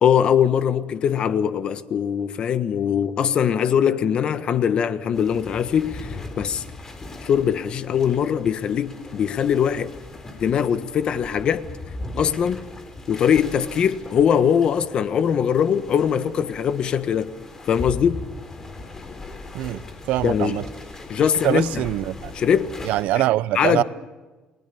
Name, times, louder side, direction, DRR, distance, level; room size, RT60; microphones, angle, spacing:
voice 1, 0.0-6.6 7.2-9.9 10.4-11.6 12.2-12.6 13.1-17.3 17.7-18.2 20.2-20.6 21.1-21.7 22.3-22.7 23.1-23.2 23.5-23.8, left 8 dB, 40° left, 1.4 m, -21 dB
sound 1, 5.1-23.0, left 2 dB, 20° left, 3.8 m, -39 dB
voice 2, 20.1-20.6 21.4-22.3 22.8-23.8, right 15 dB, 75° right, 0.7 m, -23 dB
29.5 x 21.0 x 7.1 m
cardioid pair, 155°, 2 cm